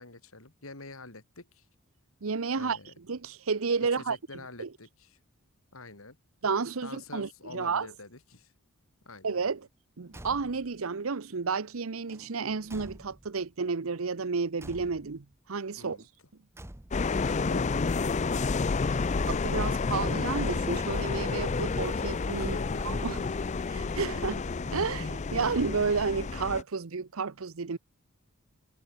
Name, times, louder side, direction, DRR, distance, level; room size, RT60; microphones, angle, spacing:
voice 1, 0.0-1.6 2.6-2.9 3.9-5.2 5.7-6.2 6.8-8.5 9.1-9.4 15.8-16.1 17.2-18.4 22.4-22.9 23.9-24.1, left 3 dB, 80° left, 4.1 m, -47 dB
voice 2, 2.2-2.8 3.1-4.2 4.6-4.7 6.4-7.9 9.2-9.7 10.0-16.0 19.3-22.6 22.8-23.2 23.7-24.4 24.7-27.8, right 5 dB, 80° right, 0.8 m, -31 dB
Car / Truck / Slam, 10.1-10.8 12.1-13.5 14.6-15.4 16.5-17.2 18.3-19.0, right 1 dB, 10° right, 0.9 m, -48 dB
sound 1, 16.9-26.6, left 4 dB, 35° left, 0.5 m, -30 dB
head